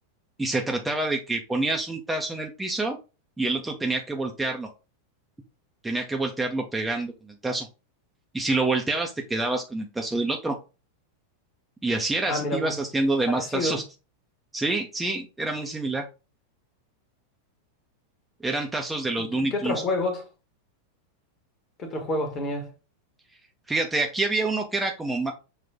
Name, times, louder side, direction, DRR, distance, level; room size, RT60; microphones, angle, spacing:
voice 1, 0.4-3.0 3.4-4.7 5.8-7.1 7.4-7.7 8.3-10.6 11.8-13.8 14.5-16.0 18.4-19.8 23.7-25.3, right 2 dB, 10° right, 0.6 m, -27 dB
voice 2, 12.3-12.8 13.3-13.8 19.3-20.2 21.8-22.7, left 2 dB, 30° left, 1.4 m, -28 dB
6.0 x 2.5 x 3.6 m
figure-of-eight pair, 90°, 0 cm